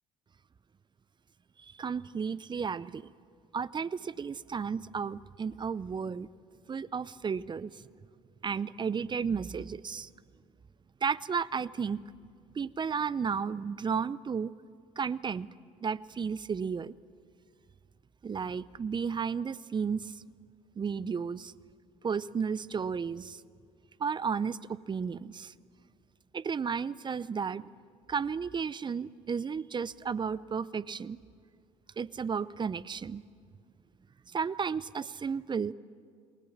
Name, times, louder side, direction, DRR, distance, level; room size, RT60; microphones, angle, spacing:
voice 1, 1.6-3.1 3.5-6.3 6.7-7.8 8.4-10.1 11.0-12.0 12.5-14.5 15.0-15.5 15.8-16.9 18.2-20.1 20.8-21.5 22.0-23.4 24.0-25.5 26.3-27.7 28.1-31.2 32.0-33.2 34.3-35.7, right 6 dB, 30° right, 18 dB, 0.6 m, -33 dB
28.5 x 20.0 x 7.3 m, 2.2 s
hypercardioid pair, 60°, 15 cm